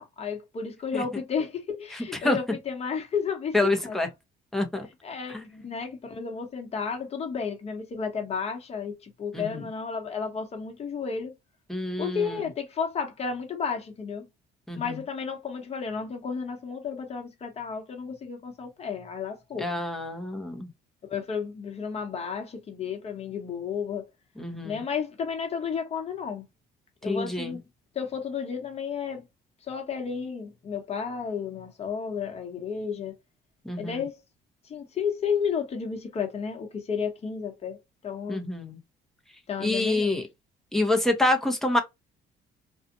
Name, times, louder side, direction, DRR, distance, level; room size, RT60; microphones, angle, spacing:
voice 1, 0.0-3.5 3.8-4.0 5.0-11.3 12.0-14.3 14.7-19.7 21.1-24.1 24.6-26.4 27.0-27.6 27.9-29.2 29.7-33.2 33.8-34.2 34.6-38.4 39.5-40.2, left 6 dB, 40° left, 1.1 m, -32 dB
voice 2, 3.5-4.1 4.5-4.9 5.3-5.5 9.3-9.6 11.7-12.4 14.7-15.0 19.6-20.7 24.4-24.8 27.0-27.6 33.6-34.0 38.3-38.8 39.6-40.2 40.7-41.8, left 2 dB, ahead, 0.8 m, -27 dB
2.6 x 2.4 x 2.5 m
cardioid pair, 110°, 17 cm